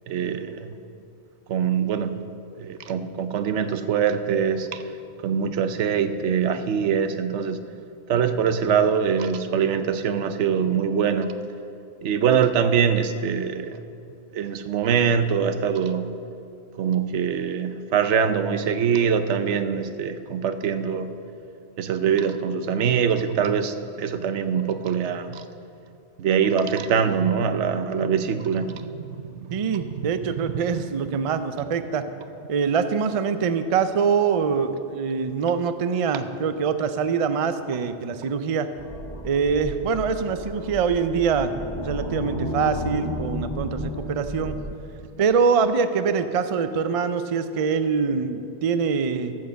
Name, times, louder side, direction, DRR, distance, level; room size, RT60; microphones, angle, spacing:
voice 1, 0.1-0.7 1.5-2.2 2.6-4.8 5.2-7.6 8.1-11.4 12.0-13.8 14.3-16.1 16.8-21.1 21.8-25.5 26.2-29.9, right 7 dB, 80° right, 10 dB, 1.0 m, -23 dB
voice 2, 29.5-32.0 32.5-38.7 39.2-41.5 41.8-44.6 45.2-49.4, right 6 dB, 45° right, 10 dB, 0.4 m, -24 dB
sound 1, 38.8-44.6, left 1 dB, 20° left, 2.2 m, -32 dB
14.0 x 6.5 x 6.8 m, 2.6 s
omnidirectional pair, 1.2 m